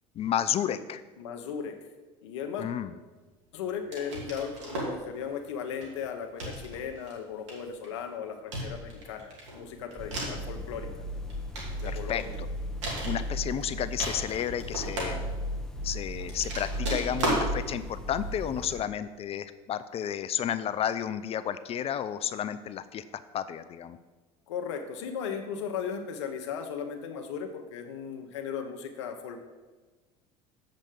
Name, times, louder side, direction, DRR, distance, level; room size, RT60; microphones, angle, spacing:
voice 1, 0.2-1.0 2.6-2.9 11.8-12.5 13.0-15.2 15.8-24.0, left 10 dB, 45° left, 13 dB, 0.5 m, -32 dB
voice 2, 1.2-1.8 2.2-2.7 3.5-10.9 11.8-12.4 24.5-29.4, left 7 dB, 90° left, 5 dB, 0.9 m, -36 dB
sound 1, 3.9-5.0 5.7-6.0 6.4-7.1 7.5-8.0 8.5-10.5 11.1-12.4 12.8-13.6 13.9-15.6 16.2-17.5, right 1 dB, 90° right, 2.6 m, -35 dB
sound 2, 10.0-18.8, equal, 5° left, 1.0 m, -36 dB
7.6 x 5.2 x 7.5 m, 1.3 s
supercardioid pair, 90°, 15 cm